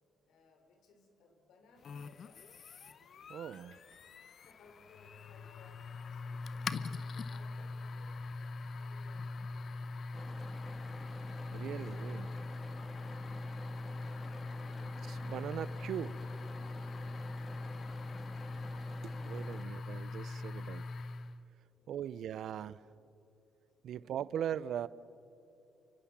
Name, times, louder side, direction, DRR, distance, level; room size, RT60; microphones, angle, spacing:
voice 1, 0.2-2.5 4.4-8.3 8.8-10.5 11.6-13.6 13.8-14.9 16.8-18.0 19.4-19.9 21.7-22.3 23.8-24.4, left 3 dB, 75° left, 5 dB, 4.3 m, -65 dB
sound 1, 1.8-21.4, left 3 dB, 55° left, 0.9 m, -42 dB
voice 2, 3.3-3.8 11.5-12.3 15.1-16.2 19.0-20.9 21.9-22.9 23.8-24.9, right 10 dB, 70° right, 19 dB, 0.6 m, -40 dB
sound 2, 10.1-19.6, right 1 dB, 10° right, 0.5 m, -52 dB
29.0 x 24.5 x 7.4 m, 2.9 s
cardioid pair, 90°, 0 cm